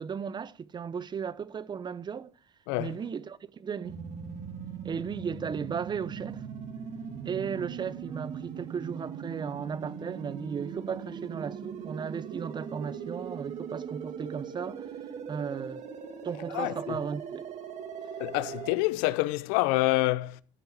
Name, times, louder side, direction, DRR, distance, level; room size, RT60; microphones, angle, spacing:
voice 1, 0.0-2.3 2.8-4.0 4.8-6.4 7.2-15.0 15.3-15.9 16.2-17.5, right 6 dB, 30° right, 0.8 m, -35 dB
sound 1, 3.8-18.7, right 7 dB, 50° right, 2.1 m, -40 dB
voice 2, 16.5-17.0 18.2-20.4, left 19 dB, 75° left, 0.7 m, -27 dB
13.5 x 6.2 x 6.6 m
supercardioid pair, 90°, 15 cm